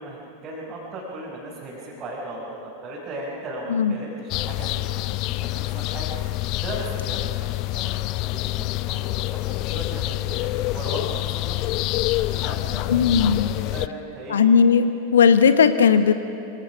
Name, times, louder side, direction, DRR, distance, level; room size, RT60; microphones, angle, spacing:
voice 1, 0.0-11.6 12.2-14.4, right 1 dB, 25° right, -6 dB, 5.4 m, -37 dB
sound 1, 4.3-13.9, left 18 dB, 40° left, 0.6 m, -27 dB
voice 2, 12.9-13.5 14.3-16.1, left 6 dB, 65° left, 11 dB, 1.1 m, -17 dB
28.0 x 25.0 x 6.1 m, 2.7 s
figure-of-eight pair, 90°, 0 cm